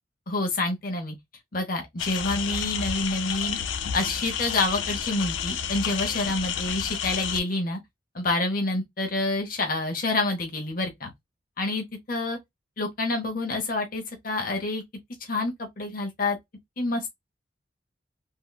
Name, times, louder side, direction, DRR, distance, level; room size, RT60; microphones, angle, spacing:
voice 1, 0.3-1.1 1.5-3.6 3.9-7.8 8.1-11.1 11.6-12.4 12.8-14.8 15.3-16.4 16.8-17.1, left 2 dB, 50° left, 0.8 m, -28 dB
sound 1, 2.0-7.4, left 8 dB, 85° left, 0.4 m, -30 dB
3.5 x 2.2 x 2.2 m
head